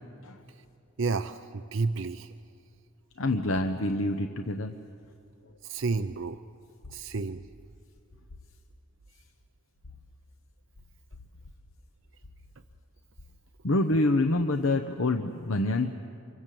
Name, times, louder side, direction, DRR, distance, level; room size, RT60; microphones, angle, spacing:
voice 1, 1.0-2.3 5.6-6.4 6.9-7.4, right 4 dB, 60° right, 9 dB, 0.6 m, -30 dB
voice 2, 3.2-4.7 13.6-15.9, left 2 dB, 65° left, 6 dB, 0.9 m, -26 dB
29.0 x 25.5 x 7.7 m, 2.5 s
head